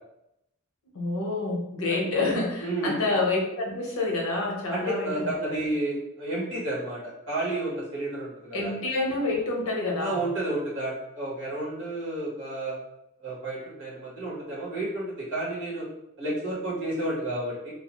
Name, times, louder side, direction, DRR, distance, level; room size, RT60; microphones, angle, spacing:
voice 1, 0.9-5.7 8.5-10.2, left 2 dB, 85° left, -1 dB, 0.7 m, -28 dB
voice 2, 2.6-3.2 4.7-8.7 10.0-12.8 13.2-15.8 16.2-17.7, right 1 dB, 55° right, -6 dB, 1.3 m, -31 dB
2.8 x 2.0 x 2.9 m, 0.83 s
head